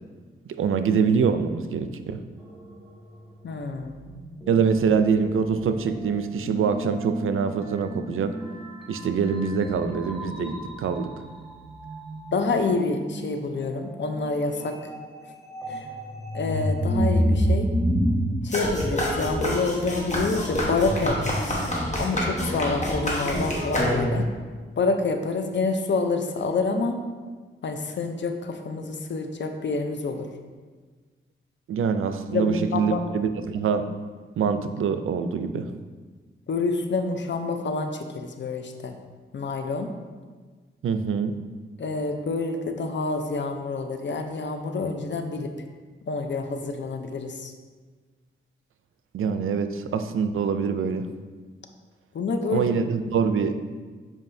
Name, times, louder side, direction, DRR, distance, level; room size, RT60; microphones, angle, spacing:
voice 1, 0.6-2.2 4.5-8.4 8.9-11.1 31.7-33.9 34.4-35.7 40.8-41.4 49.1-51.1 52.5-53.6, right 6 dB, 90° right, 9 dB, 0.4 m, -24 dB
sound 1, 2.4-2.8 3.6-18.2, equal, ahead, 1.2 m, -30 dB
voice 2, 3.4-4.0 12.3-14.8 15.7-15.9 16.3-17.7 18.4-21.6 22.0-24.3 24.8-27.0 27.6-30.3 32.3-33.0 36.5-39.0 39.3-39.9 41.8-45.5 46.1-47.5 52.1-52.7, left 3 dB, 60° left, 6 dB, 0.6 m, -27 dB
sound 2, 18.5-24.3, equal, 35° left, 1.3 m, -27 dB
7.5 x 4.7 x 2.6 m, 1.4 s
wide cardioid pair, 80°, 21 cm